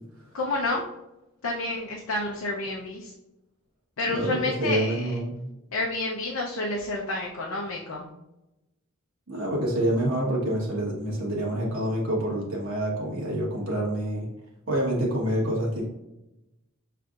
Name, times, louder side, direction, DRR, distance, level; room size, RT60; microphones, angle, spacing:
voice 1, 0.3-0.8 1.4-3.1 4.0-5.0 5.7-8.0, left 2 dB, 80° left, -2 dB, 0.7 m, -29 dB
voice 2, 4.1-5.4 9.3-14.3 14.7-15.9, right 1 dB, 70° right, -4 dB, 1.3 m, -27 dB
6.0 x 3.3 x 2.5 m, 0.94 s
head